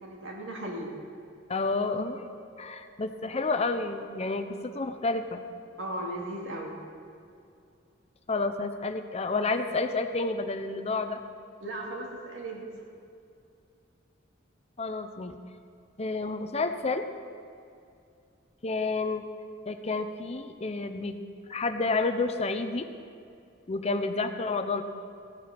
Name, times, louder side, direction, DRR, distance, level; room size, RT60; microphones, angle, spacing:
voice 1, 0.0-0.9 5.8-6.7 11.6-12.7, right 1 dB, 90° right, -1 dB, 2.4 m, -36 dB
voice 2, 1.5-5.4 8.3-11.2 14.8-15.3 16.0-17.0 18.6-19.2 19.7-21.2 21.5-22.9 23.7-24.8, left 3 dB, 35° left, 8 dB, 0.7 m, -30 dB
15.5 x 8.1 x 5.9 m, 2.5 s
head